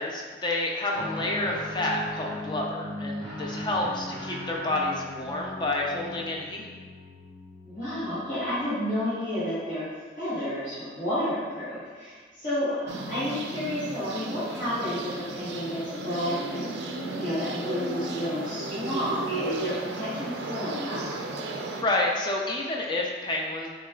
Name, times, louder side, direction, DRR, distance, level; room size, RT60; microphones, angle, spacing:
voice 1, 0.0-6.7 21.8-23.7, left 2 dB, 25° left, -1 dB, 0.4 m, -29 dB
Guitar, 0.9-8.6, left 1 dB, 5° left, 1.4 m, -38 dB
voice 2, 7.6-9.9 10.2-12.8 13.1-16.7 17.2-21.0, left 1 dB, 40° left, -15 dB, 1.2 m, -31 dB
sound 1, 12.9-21.8, right 2 dB, 60° right, 0.4 m, -34 dB
5.9 x 2.4 x 2.3 m, 1.5 s
head